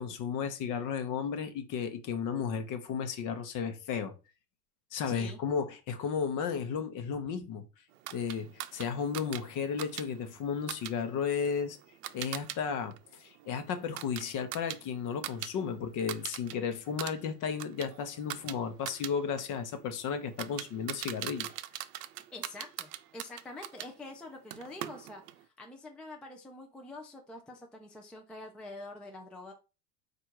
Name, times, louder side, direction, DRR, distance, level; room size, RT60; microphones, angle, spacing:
voice 1, 0.0-4.1 4.9-7.6 8.1-11.8 12.1-12.9 13.2-21.5, left 6 dB, 40° left, 0.9 m, -34 dB
voice 2, 5.1-5.4 22.3-29.5, left 2 dB, ahead, 0.4 m, -46 dB
sound 1, 8.1-12.6 12.9-15.5 15.8-16.5 16.9-23.9 24.5-25.4, right 13 dB, 80° right, 0.6 m, -42 dB
4.3 x 2.6 x 4.5 m
hypercardioid pair, 105°, 47 cm